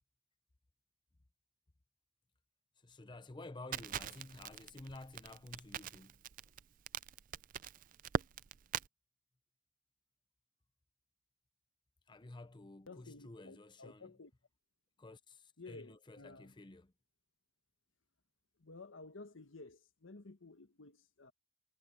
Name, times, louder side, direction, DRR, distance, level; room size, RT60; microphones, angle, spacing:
voice 1, 2.8-6.2 12.1-14.1 15.0-16.9, left 2 dB, 25° left, 0.6 m, -52 dB
Crackle, 3.7-8.9, right 7 dB, 45° right, 0.4 m, -42 dB
voice 2, 12.9-14.3 15.6-16.5 18.6-21.3, left 3 dB, 85° left, 1.3 m, -53 dB
head